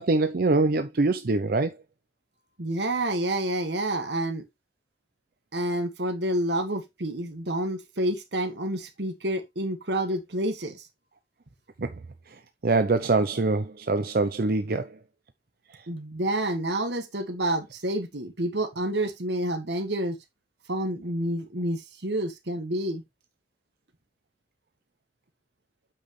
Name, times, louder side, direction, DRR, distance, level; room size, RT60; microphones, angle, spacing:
voice 1, 0.0-1.8 11.8-11.9 12.3-15.0, right 3 dB, 55° right, 0.6 m, -24 dB
voice 2, 2.6-4.4 5.5-10.9 15.9-20.2 20.7-23.0, right 1 dB, 75° right, 1.7 m, -29 dB
8.6 x 5.9 x 3.2 m
head